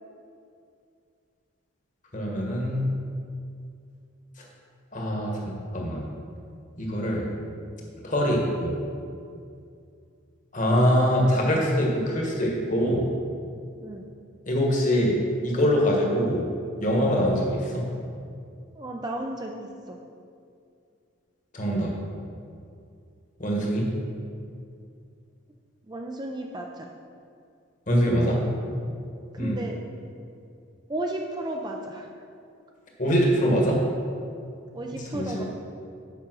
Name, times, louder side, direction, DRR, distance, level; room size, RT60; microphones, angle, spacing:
voice 1, 2.1-2.9 4.4-4.5 4.9-6.1 6.8-7.3 8.0-8.7 10.5-13.1 14.5-15.2 15.4-16.5 16.8-17.8 21.5-21.9 23.4-23.9 27.9-28.4 29.4-29.6 33.0-33.8 35.1-35.4, equal, 35° left, -1 dB, 1.3 m, -23 dB
voice 2, 18.7-20.0 25.8-26.9 28.1-28.5 29.3-29.8 30.9-32.2 34.7-35.4, right 1 dB, 20° right, 1 dB, 0.4 m, -34 dB
7.4 x 5.1 x 6.1 m, 2.4 s
head